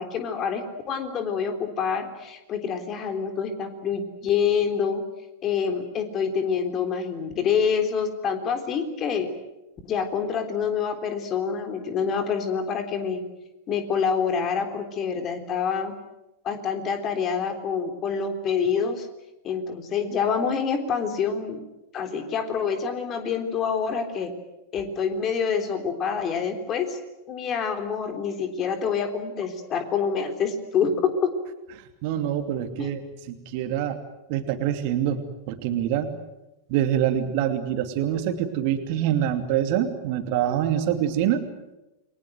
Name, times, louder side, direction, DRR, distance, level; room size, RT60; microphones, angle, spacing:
voice 1, 0.0-5.0 5.4-9.3 9.8-13.2 13.7-15.9 16.4-19.1 19.4-21.6 21.9-24.3 24.7-27.0 27.3-31.3 32.8-32.9, left 6 dB, 30° left, 7 dB, 3.6 m, -26 dB
voice 2, 31.8-34.0 34.3-36.1 36.7-41.4, right 10 dB, 45° right, 8 dB, 2.6 m, -25 dB
29.5 x 22.5 x 7.9 m, 0.96 s
figure-of-eight pair, 90°, 0 cm